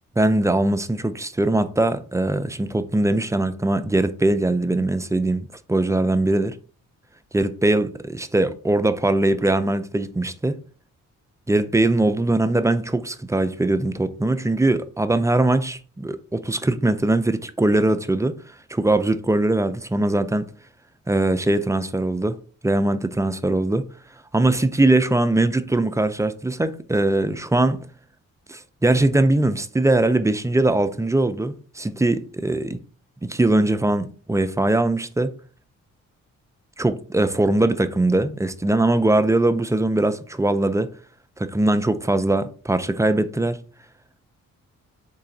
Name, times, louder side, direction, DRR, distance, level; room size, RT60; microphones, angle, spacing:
voice 1, 0.2-6.6 7.3-10.6 11.5-18.3 18.7-20.5 21.1-22.4 22.6-23.8 24.3-27.9 28.5-32.8 33.2-35.3 36.8-40.9 41.4-43.6, right 2 dB, 10° right, 0.4 m, -21 dB
3.8 x 3.3 x 3.8 m
cardioid pair, 60°, 32 cm